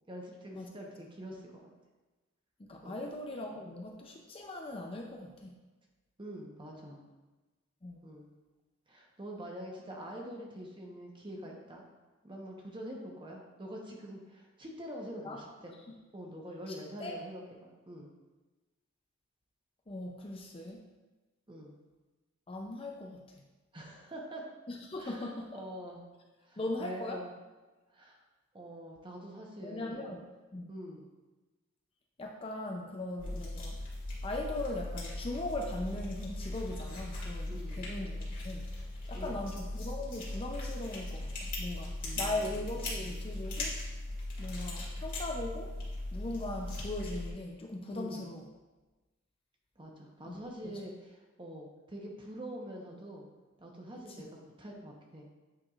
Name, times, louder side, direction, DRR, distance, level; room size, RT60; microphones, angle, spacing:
voice 1, 0.1-1.7 2.8-3.0 6.2-7.0 8.0-8.3 8.9-11.8 12.2-15.7 16.1-18.1 21.5-21.7 23.7-24.4 25.0-26.0 26.4-27.3 27.9-28.2 28.5-30.1 30.7-31.1 33.2-33.5 37.5-37.8 39.1-39.4 42.0-42.7 44.6-44.7 47.9-48.3 49.8-53.3 53.6-55.3, equal, 25° right, -1 dB, 0.9 m, -45 dB
voice 2, 2.6-5.5 7.8-8.0 15.2-15.4 15.9-16.0 16.7-17.2 19.9-20.8 22.5-23.2 24.7-25.6 26.6-27.2 29.6-30.7 32.2-33.8 34.2-38.7 39.1-43.8 44.4-45.8 46.1-48.4 50.3-50.8, left 2 dB, 30° left, 1 dB, 0.5 m, -39 dB
sound 1, 33.2-47.3, left 2 dB, 45° left, 1.9 m, -39 dB
8.7 x 4.7 x 2.4 m, 1.2 s
head